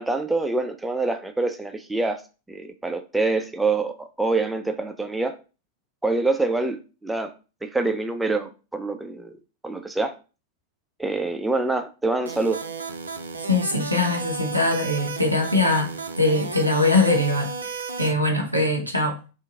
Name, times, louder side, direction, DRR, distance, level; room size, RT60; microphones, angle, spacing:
voice 1, 0.0-2.2 2.5-5.4 6.0-7.3 7.6-9.4 9.6-10.1 11.0-12.6, right 3 dB, 5° right, 0.4 m, -25 dB
sound 1, 12.3-18.1, right 4 dB, 75° right, 0.4 m, -33 dB
voice 2, 13.4-19.2, left 2 dB, 90° left, 0.7 m, -22 dB
2.8 x 2.5 x 3.5 m
figure-of-eight pair, 90°, 0 cm